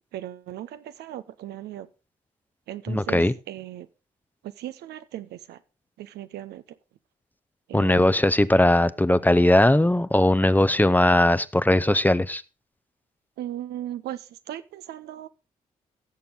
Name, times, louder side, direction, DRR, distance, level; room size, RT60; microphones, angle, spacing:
voice 1, 0.1-1.9 2.7-3.9 4.6-5.6 6.0-6.6 7.7-8.1 13.4-15.3, right 12 dB, 70° right, 0.7 m, -37 dB
voice 2, 2.9-3.3 7.7-12.4, left 1 dB, 10° left, 0.8 m, -19 dB
17.0 x 6.9 x 4.0 m
hypercardioid pair, 40°, 17 cm